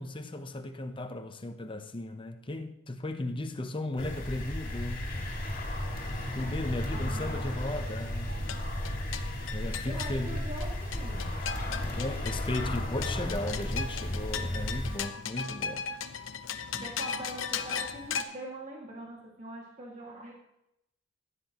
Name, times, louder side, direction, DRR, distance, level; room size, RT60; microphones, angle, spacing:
voice 1, 0.0-5.3 6.1-8.4 9.5-10.5 11.8-15.9 16.7-16.9, left 2 dB, 25° left, 0.8 m, -36 dB
sound 1, 4.0-15.0, left 1 dB, 45° left, 2.4 m, -34 dB
voice 2, 6.9-7.4 9.9-11.4 16.8-20.3, right 1 dB, 40° right, 2.2 m, -43 dB
sound 2, 8.3-18.2, left 6 dB, 85° left, 0.8 m, -38 dB
15.5 x 9.9 x 3.0 m
head